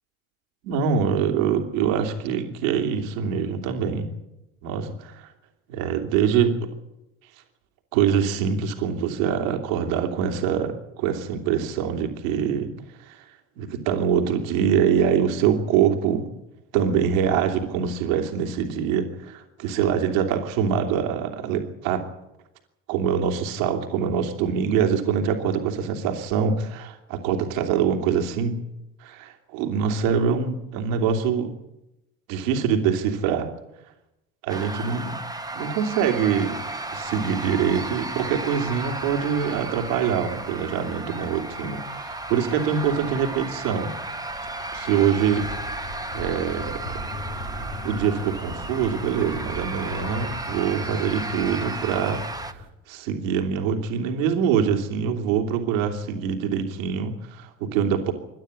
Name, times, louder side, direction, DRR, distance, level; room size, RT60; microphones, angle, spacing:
voice 1, 0.6-4.1 4.6-5.3 5.7-6.7 7.9-12.7 13.1-13.3 13.6-16.3 16.7-22.0 22.9-28.6 29.0-31.6 32.3-33.5 34.4-35.2 35.5-36.6 36.9-43.9 44.7-45.5 46.1-46.8 47.8-52.2 52.5-58.1, right 7 dB, 75° right, 4 dB, 3.1 m, -24 dB
sound 1, 34.5-52.5, right 2 dB, 10° right, 1.8 m, -34 dB
sound 2, 36.9-52.7, left 1 dB, 75° left, 5.3 m, -41 dB
27.0 x 12.5 x 9.9 m, 0.91 s
hypercardioid pair, 60°, 40 cm